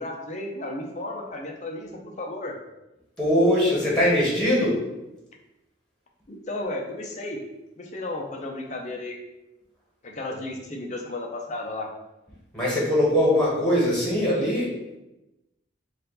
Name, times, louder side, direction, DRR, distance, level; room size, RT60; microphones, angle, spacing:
voice 1, 0.0-2.5 6.3-7.4 7.8-9.2 10.0-11.9, left 2 dB, 40° left, 1 dB, 0.6 m, -33 dB
voice 2, 3.2-4.8 12.5-14.7, equal, 5° left, -6 dB, 1.3 m, -21 dB
4.4 x 2.6 x 3.9 m, 0.97 s
head